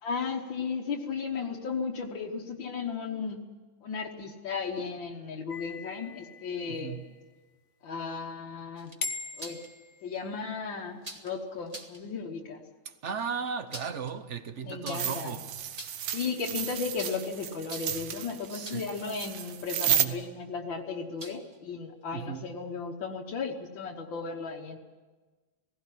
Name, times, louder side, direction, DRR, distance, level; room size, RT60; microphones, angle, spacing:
voice 1, 0.0-3.4 3.8-7.0 7.8-8.9 9.4-9.6 10.0-12.6 14.6-15.3 16.1-24.8, left 5 dB, 75° left, 2.0 m, -35 dB
sound 1, 5.5-7.1 9.0-10.6, left 4 dB, 55° left, 1.5 m, -40 dB
voice 2, 6.7-7.1 12.8-15.5 15.8-15.9 18.5-18.9 19.8-20.2 22.1-22.6, right 6 dB, 50° right, 1.0 m, -36 dB
sound 2, 8.8-9.7 11.0-11.3 11.7-12.0 13.5-14.1 14.8-15.2 15.6-16.1 17.0-17.3 17.6-18.1 18.6-19.0 19.9-20.2 21.2-21.6, right 1 dB, 20° right, 1.6 m, -44 dB
sound 3, 14.9-20.0, right 9 dB, 75° right, 1.6 m, -32 dB
18.0 x 16.0 x 10.0 m
omnidirectional pair, 2.1 m